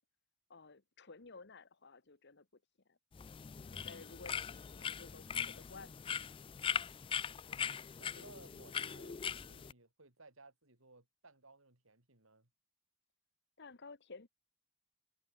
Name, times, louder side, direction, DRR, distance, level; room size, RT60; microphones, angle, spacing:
voice 1, 0.5-2.6 2.9-3.0 3.6-6.3 7.2-7.9 13.6-14.3, left 4 dB, 55° left, 1.3 m, -55 dB
sound 1, 3.1-9.7, left 7 dB, 25° left, 0.3 m, -41 dB
voice 2, 7.6-12.5, right 3 dB, 70° right, 4.3 m, -60 dB
head